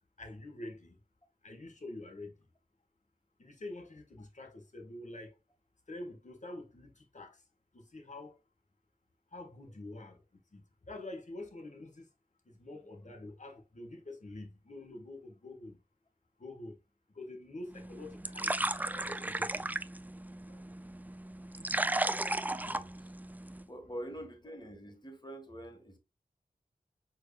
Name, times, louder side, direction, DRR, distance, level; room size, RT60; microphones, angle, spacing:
voice 1, 0.2-1.0 1.4-2.3 3.4-5.3 5.9-7.4 7.7-8.4 9.3-10.2 10.5-12.1 12.5-15.8 16.4-16.8 17.1-18.6 18.9-19.6, left 2 dB, 50° left, 1.5 m, -46 dB
sound 1, 17.7-23.7, right 2 dB, 10° right, 0.3 m, -35 dB
voice 2, 22.6-23.1 23.7-26.0, equal, 30° left, 1.5 m, -46 dB
4.9 x 4.6 x 2.3 m
wide cardioid pair, 55°, 16 cm